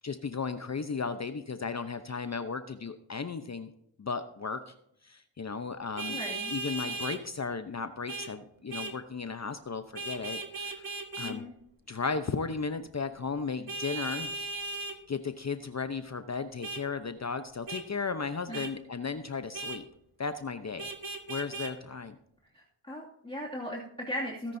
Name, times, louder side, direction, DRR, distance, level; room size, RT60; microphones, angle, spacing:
voice 1, 0.0-3.7 4.0-4.7 5.0-10.9 11.2-11.5 11.9-14.3 15.1-19.8 20.2-20.9 21.3-22.2, left 5 dB, 35° left, 9 dB, 0.8 m, -35 dB
Vehicle horn car horn honking, 6.0-7.2 8.1-8.3 8.7-9.0 10.0-11.4 13.7-15.0 16.6-16.8 17.7-17.8 18.5-18.7 19.5-19.8 20.8-21.7, right 3 dB, 45° right, 1.7 m, -37 dB
voice 2, 6.1-6.5 11.2-11.5 18.5-18.7 22.5-24.6, equal, 10° left, -4 dB, 2.4 m, -38 dB
17.0 x 10.0 x 2.7 m, 0.75 s
cardioid pair, 75°, 49 cm